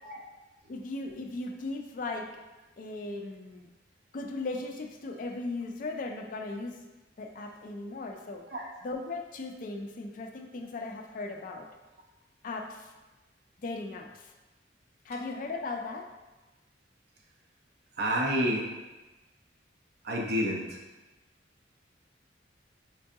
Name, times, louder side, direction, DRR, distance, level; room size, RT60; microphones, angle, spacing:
voice 1, 0.7-2.4 2.8-3.7 4.1-6.8 7.2-8.4 8.8-11.7 12.4-12.9 13.6-14.3 15.0-16.1, left 3 dB, 45° left, 3 dB, 0.3 m, -37 dB
voice 2, 18.0-18.6 20.0-20.8, equal, 55° right, -2 dB, 0.5 m, -29 dB
4.5 x 2.5 x 2.6 m, 1.1 s
head